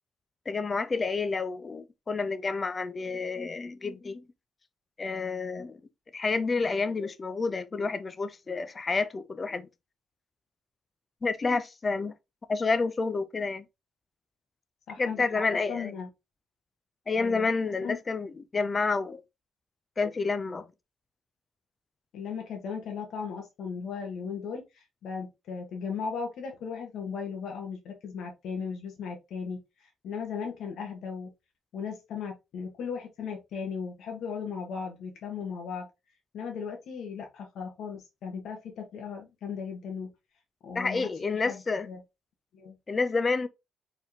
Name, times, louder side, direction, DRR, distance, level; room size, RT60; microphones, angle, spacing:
voice 1, 0.5-4.2 5.0-5.8 6.1-9.7 11.2-12.1 12.5-13.6 15.0-15.9 17.1-19.2 20.0-20.7 40.7-41.9 42.9-43.5, left 4 dB, 30° left, 0.5 m, -29 dB
voice 2, 14.9-15.4 15.7-16.1 17.1-17.5 17.8-18.0 22.1-31.3 31.7-35.9 36.3-40.1 40.6-42.0 42.5-42.7, left 6 dB, 75° left, 1.2 m, -37 dB
4.4 x 3.6 x 2.8 m
cardioid pair, 90°, 0 cm